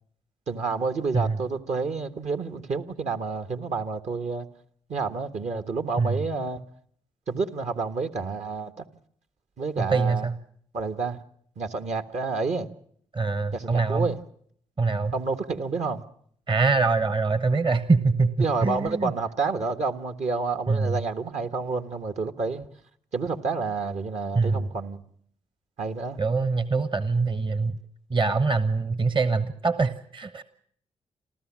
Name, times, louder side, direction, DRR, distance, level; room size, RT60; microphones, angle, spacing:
voice 1, 0.5-4.5 4.9-6.6 7.3-8.8 9.6-10.3 10.7-11.2 11.6-12.7 13.5-14.2 15.1-16.0 18.4-22.7 23.1-25.0 25.8-26.2, right 4 dB, 60° right, 1.5 m, -29 dB
voice 2, 9.8-10.4 13.1-14.1 14.8-15.1 16.5-19.1 20.7-21.0 24.3-24.7 26.2-27.7 28.1-30.4, right 4 dB, 35° right, 1.3 m, -24 dB
28.0 x 13.5 x 7.5 m
hypercardioid pair, 40°, 14 cm